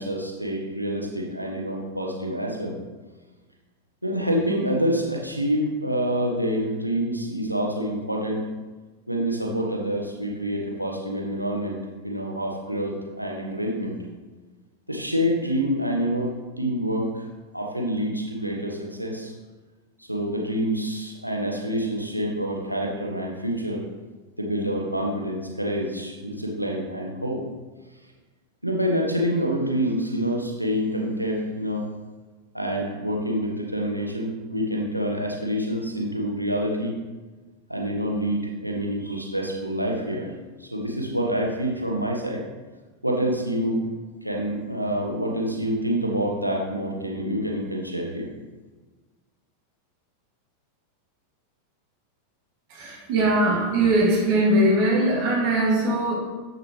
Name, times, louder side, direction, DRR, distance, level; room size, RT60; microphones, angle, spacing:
voice 1, 0.0-2.8 4.0-8.4 9.1-14.0 14.9-17.3 17.5-19.3 20.0-23.8 24.4-27.4 28.6-31.8 32.5-37.0 37.7-40.3 40.6-42.4 43.0-43.8 44.2-48.3, equal, 90° right, -1 dB, 1.4 m, -27 dB
voice 2, 52.7-56.1, right 1 dB, 45° right, -3 dB, 2.5 m, -21 dB
9.0 x 6.8 x 3.4 m, 1.3 s
figure-of-eight pair, 90°, 0 cm